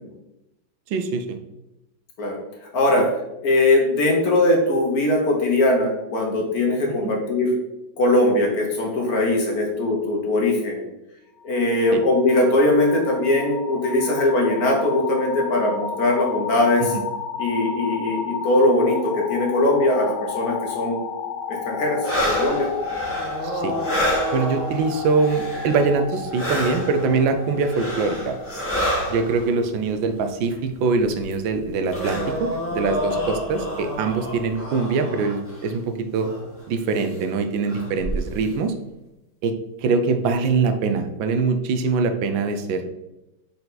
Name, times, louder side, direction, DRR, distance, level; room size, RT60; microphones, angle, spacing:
voice 1, 0.9-1.4 7.0-7.1 11.9-12.0 16.8-17.0 23.4-23.7 24.3-28.4 29.1-36.3 36.7-38.7 39.4-39.5 39.8-42.9, right 4 dB, 80° right, 7 dB, 1.4 m, -23 dB
voice 2, 2.7-3.1 3.4-7.5 8.0-10.8 11.4-16.9 17.4-21.0 21.5-22.7, left 2 dB, 55° left, 0 dB, 1.4 m, -20 dB
sound 1, 11.4-29.3, left 5 dB, 75° left, 1.1 m, -32 dB
sound 2, 22.0-26.0 26.3-29.5 30.5-30.6 31.0-35.7 36.2-36.5 36.9-37.1 37.6-38.4, equal, 5° left, 1.4 m, -28 dB
5.1 x 4.6 x 3.9 m, 0.94 s
omnidirectional pair, 2.1 m